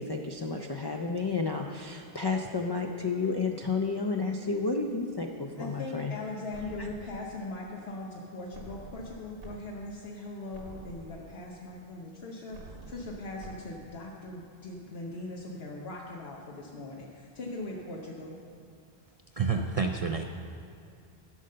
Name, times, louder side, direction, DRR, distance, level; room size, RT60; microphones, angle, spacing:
voice 1, 0.0-6.1 6.8-6.9, left 4 dB, 35° left, 2 dB, 0.4 m, -31 dB
voice 2, 5.6-18.4, left 2 dB, 80° left, -2 dB, 1.1 m, -40 dB
sound 1, 6.5-7.5 8.5-9.6 10.0-10.1 10.5-11.5 12.5-13.6, right 3 dB, 65° right, 1.2 m, -47 dB
voice 3, 19.3-20.2, right 5 dB, 50° right, 4 dB, 0.4 m, -28 dB
12.5 x 5.3 x 6.6 m, 2.4 s
omnidirectional pair, 1.0 m